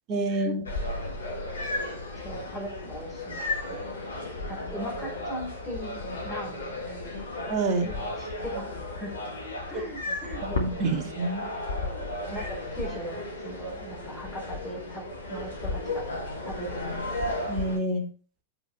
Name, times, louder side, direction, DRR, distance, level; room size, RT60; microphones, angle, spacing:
voice 1, 0.1-0.6 7.5-8.0 10.1-11.4 17.5-18.1, right 2 dB, 40° right, 4 dB, 1.8 m, -28 dB
sound 1, 0.6-17.8, left 2 dB, 70° left, 1.6 m, -34 dB
voice 2, 2.2-3.4 3.7-4.0 4.5-6.9 8.2-8.7 9.0-9.1 9.7-10.9 11.9-15.0 15.3-16.0 16.4-16.9, equal, 5° left, -3 dB, 4.1 m, -39 dB
7.8 x 6.0 x 4.3 m, 0.38 s
figure-of-eight pair, 90°, 0 cm